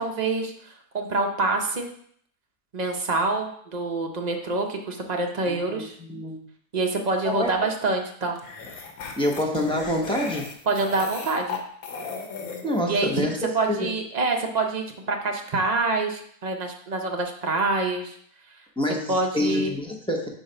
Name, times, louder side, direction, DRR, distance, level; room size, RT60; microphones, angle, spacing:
voice 1, 0.0-1.9 2.7-6.0 6.7-8.4 10.7-11.6 12.9-13.3 13.5-18.2 19.1-19.7, right 3 dB, 40° right, 2 dB, 0.7 m, -26 dB
voice 2, 5.5-6.4 7.2-7.5 9.2-10.5 12.6-13.4 13.7-13.9 18.8-20.3, left 1 dB, 5° left, -1 dB, 0.7 m, -27 dB
sound 1, 7.3-7.5 8.4-12.8, left 5 dB, 90° left, 1.3 m, -36 dB
4.8 x 3.9 x 5.5 m, 0.62 s
omnidirectional pair, 1.4 m